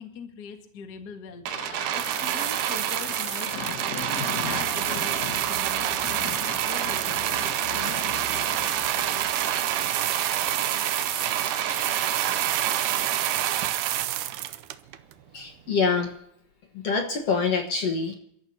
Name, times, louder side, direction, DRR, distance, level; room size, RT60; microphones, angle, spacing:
voice 1, 0.0-1.4 1.9-7.3, left 6 dB, 40° left, 4 dB, 1.5 m, -41 dB
Thunder / Rain, 1.5-13.6, left 10 dB, 75° left, 1.6 m, -39 dB
sound 1, 1.5-15.1 15.9-16.0, right 13 dB, 75° right, 2.0 m, -27 dB
sound 2, 4.0-10.5, right 1 dB, 20° right, 3.1 m, -45 dB
voice 2, 15.3-16.1 16.7-18.2, left 5 dB, 55° left, 3 dB, 2.1 m, -25 dB
28.5 x 13.5 x 2.8 m, 0.74 s
omnidirectional pair, 4.1 m